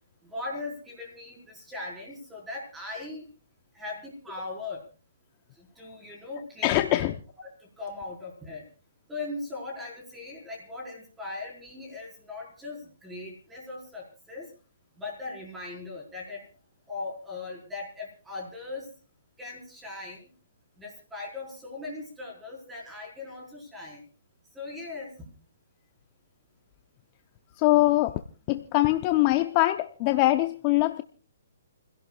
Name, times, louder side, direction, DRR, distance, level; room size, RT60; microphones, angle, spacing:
voice 1, 0.2-3.3 3.7-4.8 5.6-7.0 7.6-8.6 9.1-14.5 15.0-16.5 16.9-18.9 19.4-20.3 20.8-24.0 24.5-25.3, left 3 dB, 5° right, -1 dB, 4.7 m, -39 dB
voice 2, 6.6-7.2 27.6-28.2 28.5-31.0, left 17 dB, 25° left, 8 dB, 0.7 m, -23 dB
29.0 x 16.5 x 2.4 m, 0.37 s
hypercardioid pair, 165°, 0 cm